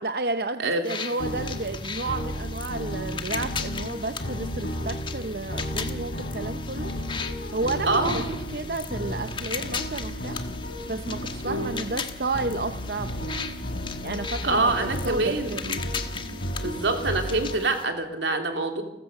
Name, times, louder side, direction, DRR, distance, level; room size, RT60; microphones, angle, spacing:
voice 1, 0.0-6.9 7.5-10.4 10.9-13.4 14.0-15.8 16.3-16.5, right 3 dB, 55° right, 9 dB, 0.7 m, -32 dB
sound 1, 0.8-17.8, left 6 dB, 25° left, 1.4 m, -38 dB
sound 2, 1.2-17.6, equal, 65° left, 3.8 m, -33 dB
voice 2, 7.8-8.2 11.4-11.7 14.4-15.8 16.6-18.8, right 2 dB, 90° right, 4 dB, 3.3 m, -25 dB
29.5 x 14.5 x 6.8 m, 0.91 s
head